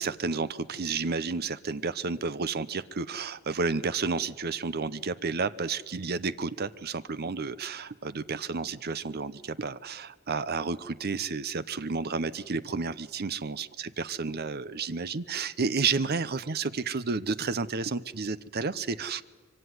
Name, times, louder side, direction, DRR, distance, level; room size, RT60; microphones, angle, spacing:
voice 1, 0.0-19.2, right 4 dB, 50° right, 16 dB, 0.8 m, -31 dB
24.5 x 24.0 x 9.6 m, 1.4 s
head